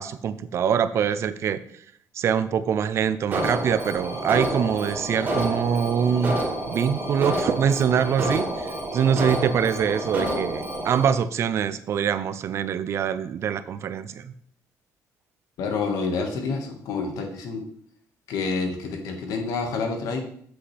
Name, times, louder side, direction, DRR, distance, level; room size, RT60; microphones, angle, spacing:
voice 1, 0.0-1.6 2.1-6.4 6.7-14.3, right 8 dB, 50° right, 14 dB, 0.5 m, -24 dB
Alarm, 3.3-11.1, right 1 dB, 30° right, 2.4 m, -29 dB
voice 2, 15.6-17.6 18.3-20.2, left 4 dB, 75° left, 3 dB, 1.6 m, -28 dB
8.4 x 7.6 x 3.4 m, 0.64 s
cardioid pair, 155°, 6 cm